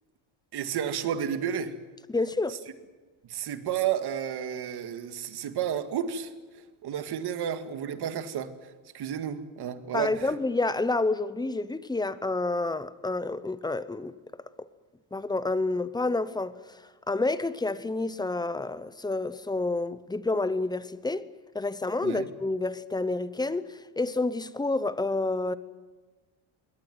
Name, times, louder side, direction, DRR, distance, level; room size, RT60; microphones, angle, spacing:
voice 1, 0.5-1.7 3.3-10.4 22.0-22.3, right 9 dB, 50° right, 2.0 m, -32 dB
voice 2, 2.1-2.6 9.9-14.1 14.6-14.7 15.1-16.6 17.1-21.2 21.5-25.5, left 2 dB, 10° left, 0.7 m, -29 dB
22.0 x 18.0 x 9.3 m
cardioid pair, 130°, 50 cm